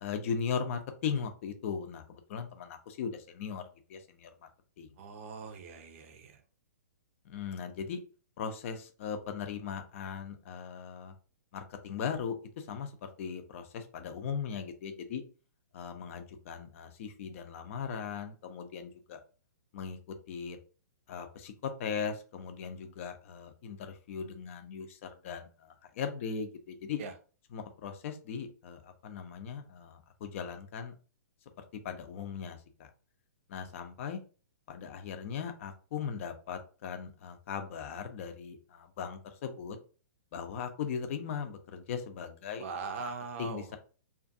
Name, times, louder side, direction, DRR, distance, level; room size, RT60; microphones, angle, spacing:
voice 1, 0.0-2.0 2.3-3.6 3.9-4.3 4.8-4.9 7.3-8.0 8.4-11.1 11.5-12.4 12.7-15.2 15.7-19.2 19.7-20.0 20.3-20.6 21.1-25.5 26.0-27.0 27.5-30.9 31.8-32.9 33.5-34.2 34.7-39.8 40.3-42.6 43.0-43.1 43.4-43.8, left 6 dB, 45° left, 7 dB, 0.5 m, -38 dB
voice 2, 5.0-6.4 27.0-27.2 42.6-43.8, right 5 dB, 45° right, 6 dB, 0.5 m, -41 dB
2.5 x 2.4 x 2.5 m, 0.37 s
figure-of-eight pair, 120°, 10 cm